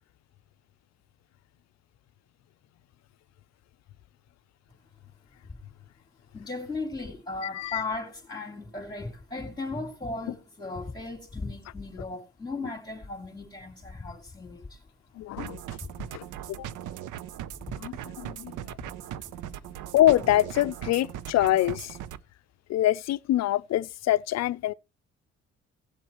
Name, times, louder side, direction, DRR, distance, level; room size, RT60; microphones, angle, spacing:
voice 1, 6.3-14.8 15.8-16.1 17.7-17.8 18.8-18.9, left 3 dB, 15° left, 2.6 m, -36 dB
voice 2, 7.4-7.8 15.2-15.6 16.1-16.3 16.6-16.7 17.8-18.8 19.9-22.0 22.7-24.7, left 14 dB, 60° left, 0.5 m, -25 dB
sound 1, 15.4-22.2, right 11 dB, 80° right, 0.7 m, -39 dB
18.0 x 7.6 x 3.0 m
cardioid pair, 90°, 30 cm